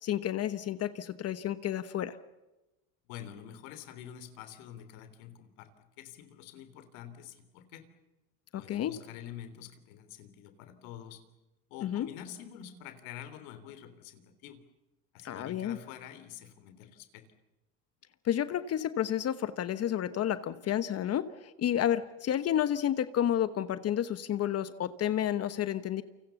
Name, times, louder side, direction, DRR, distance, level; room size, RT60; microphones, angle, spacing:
voice 1, 0.0-2.2 8.5-9.0 11.8-12.1 15.2-15.8 18.2-26.0, left 10 dB, 40° left, 13 dB, 1.1 m, -31 dB
voice 2, 3.1-7.8 8.6-11.2 11.7-14.6 15.1-17.2, left 10 dB, 80° left, 10 dB, 3.4 m, -47 dB
29.0 x 25.5 x 7.0 m, 1.0 s
supercardioid pair, 125°, 39 cm